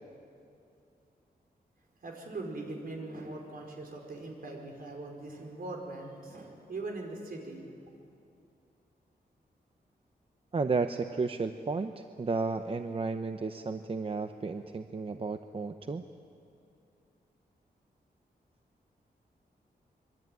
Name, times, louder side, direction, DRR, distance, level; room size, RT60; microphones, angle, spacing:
voice 1, 2.0-7.6, right 2 dB, 60° right, 1 dB, 4.8 m, -41 dB
voice 2, 10.5-16.0, right 4 dB, 35° right, 8 dB, 0.7 m, -33 dB
25.0 x 22.5 x 9.3 m, 2.6 s
wide cardioid pair, 160°, 17 cm